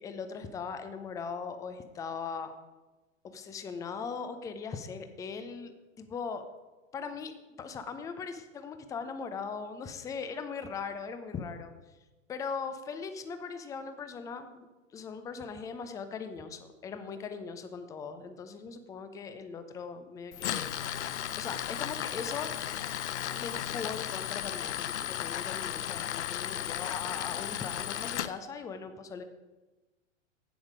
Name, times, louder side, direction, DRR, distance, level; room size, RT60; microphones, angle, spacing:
voice 1, 0.0-2.5 3.2-6.4 6.9-7.3 7.6-11.7 12.3-14.6 14.9-20.7 21.3-22.5 23.3-29.2, left 5 dB, 10° left, 9 dB, 0.5 m, -39 dB
Tools, 20.3-28.3, left 11 dB, 60° left, 0.6 m, -35 dB
10.5 x 8.7 x 4.9 m, 1.2 s
figure-of-eight pair, 100°, 39 cm